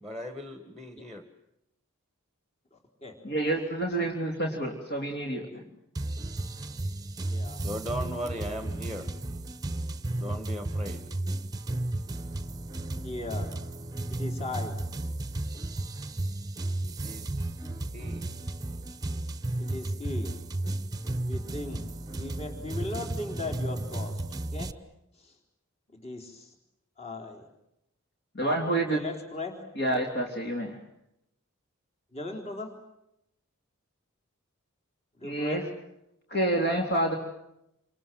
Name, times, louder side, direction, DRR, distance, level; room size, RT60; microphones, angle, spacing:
voice 1, 0.0-1.2 7.6-9.1 10.1-11.0 16.8-17.4 17.9-18.3, equal, ahead, 7 dB, 1.9 m, -38 dB
voice 2, 2.7-3.2 5.5-5.6 7.2-7.6 12.9-13.5 14.1-14.8 19.6-20.4 21.2-21.8 22.1-24.2 24.5-24.8 25.2-25.3 25.9-26.6 27.0-27.4 28.9-29.7 32.1-32.7 35.2-35.6, left 2 dB, 30° left, 2 dB, 3.8 m, -38 dB
voice 3, 3.3-5.4 28.4-29.0 29.8-30.7 35.2-35.6 36.3-37.2, right 1 dB, 50° left, 1 dB, 3.5 m, -28 dB
sound 1, 6.0-24.7, right 2 dB, 15° right, 1.0 m, -34 dB
28.5 x 26.5 x 7.7 m, 0.82 s
head